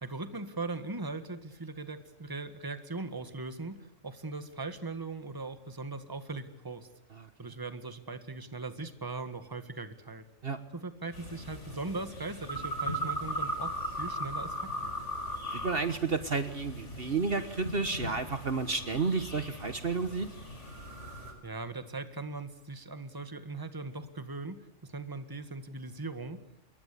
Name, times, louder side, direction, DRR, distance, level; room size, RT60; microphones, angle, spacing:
voice 1, 0.0-6.9 7.4-10.2 10.7-13.7 14.0-14.9 21.4-26.4, right 3 dB, 15° right, 10 dB, 1.7 m, -39 dB
sound 1, 11.1-21.3, equal, 65° left, 5.0 m, -38 dB
voice 2, 15.5-20.3, right 4 dB, 50° right, 10 dB, 1.6 m, -31 dB
27.5 x 22.0 x 8.5 m, 0.75 s
omnidirectional pair, 1.3 m